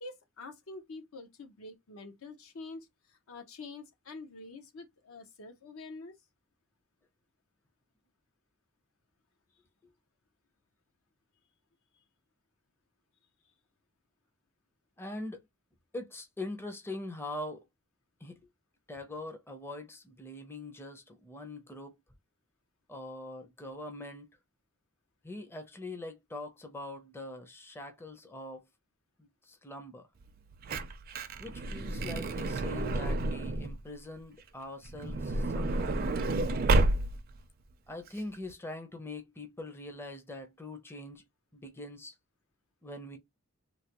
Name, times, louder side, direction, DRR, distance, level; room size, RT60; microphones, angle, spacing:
voice 1, 0.0-6.2 11.9-12.0, left 3 dB, 75° left, 0.7 m, -47 dB
voice 2, 15.0-15.4 15.9-17.6 18.2-18.4 18.9-21.9 22.9-24.3 25.2-28.6 29.2-30.0 31.4-36.1 37.9-41.2 41.5-42.1 42.8-43.2, left 2 dB, 10° left, 0.5 m, -43 dB
Truck / Door, 30.3-33.8 34.8-37.4 38.1-38.2 38.3-38.5, right 2 dB, 45° right, 0.4 m, -30 dB
3.2 x 2.1 x 2.9 m
head